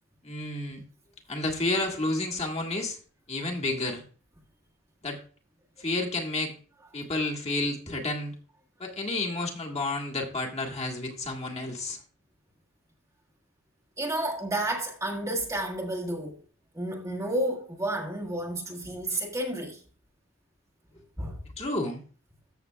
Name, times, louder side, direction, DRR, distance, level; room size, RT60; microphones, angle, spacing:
voice 1, 0.2-0.8 1.3-3.0 3.3-4.0 5.0-5.2 5.8-6.5 6.9-8.3 8.8-12.0 21.6-22.0, left 2 dB, 30° left, 1.9 m, -30 dB
voice 2, 14.0-16.4 16.7-19.8 21.2-21.4, right 1 dB, 15° right, 1.4 m, -31 dB
14.0 x 7.1 x 2.3 m
head